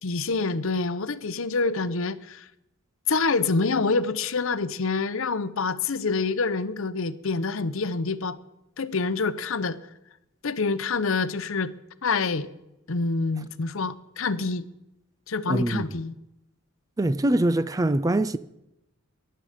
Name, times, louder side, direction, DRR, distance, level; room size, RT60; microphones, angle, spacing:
voice 1, 0.0-2.5 3.1-8.4 8.8-9.8 10.4-11.7 12.0-12.5 12.9-14.6 15.3-16.1, left 4 dB, 65° left, 0.8 m, -26 dB
voice 2, 15.5-15.8 17.0-18.4, right 1 dB, 15° right, 0.4 m, -23 dB
15.0 x 11.0 x 5.1 m
head